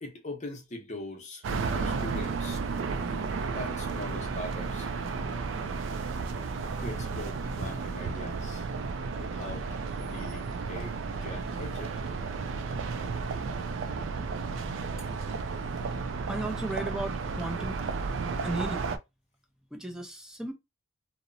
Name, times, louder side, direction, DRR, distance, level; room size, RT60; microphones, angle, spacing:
voice 1, 0.0-2.6 3.5-4.9 6.8-8.7 9.2-12.0, left 1 dB, 35° left, 0.7 m, -41 dB
sound 1, 1.4-19.0, right 4 dB, 70° right, 0.3 m, -33 dB
voice 2, 16.3-17.8 18.4-18.9 19.7-20.5, right 1 dB, 5° right, 0.5 m, -35 dB
2.8 x 2.0 x 2.5 m
head